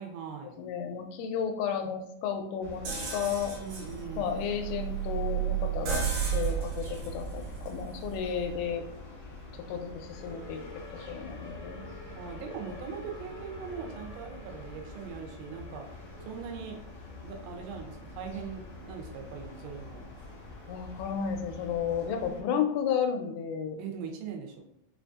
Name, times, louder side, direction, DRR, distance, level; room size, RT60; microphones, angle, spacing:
voice 1, 0.0-0.6 3.6-4.4 12.1-15.9 16.2-16.8 17.2-20.1 23.8-24.6, right 6 dB, 90° right, 2 dB, 3.0 m, -41 dB
voice 2, 0.6-2.8 3.1-3.5 4.2-8.8 9.7-11.8 20.7-23.8, left 7 dB, 90° left, 5 dB, 2.9 m, -32 dB
sound 1, 2.6-22.4, left 2 dB, 60° left, 1.3 m, -45 dB
sound 2, 2.9-8.7, right 8 dB, 65° right, 2.1 m, -33 dB
6.5 x 2.5 x 2.3 m, 0.78 s
omnidirectional pair, 5.0 m